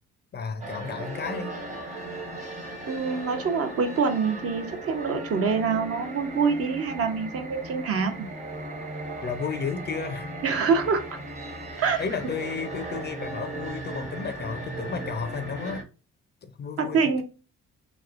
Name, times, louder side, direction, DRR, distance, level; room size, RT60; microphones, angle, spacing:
voice 1, 0.3-1.5 9.2-10.4 12.0-15.8 16.4-17.2, left 5 dB, 35° left, 0.4 m, -33 dB
sound 1, 0.6-15.8, right 1 dB, 25° right, 0.8 m, -37 dB
voice 2, 2.9-8.2 10.4-11.0 11.8-12.0 16.8-17.2, right 5 dB, 50° right, 0.6 m, -25 dB
3.0 x 2.1 x 2.4 m
cardioid pair, 90°, 30 cm